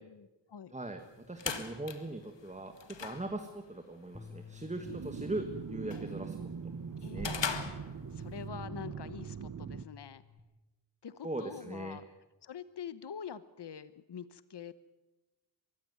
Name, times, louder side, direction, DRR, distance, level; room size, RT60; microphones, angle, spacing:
voice 1, 0.0-0.7 7.0-10.2 11.0-12.0 12.4-14.7, left 7 dB, 70° left, 15 dB, 1.0 m, -46 dB
voice 2, 0.7-6.4 7.0-7.3 11.2-12.0, right 2 dB, 15° right, 6 dB, 1.5 m, -40 dB
sound 1, 1.0-8.5, left 6 dB, 85° left, 1.9 m, -42 dB
sound 2, 4.1-10.4, left 6 dB, 5° left, 1.3 m, -55 dB
sound 3, 4.8-9.8, right 6 dB, 45° right, 0.9 m, -41 dB
23.0 x 15.5 x 9.4 m, 1.1 s
wide cardioid pair, 120°, 42 cm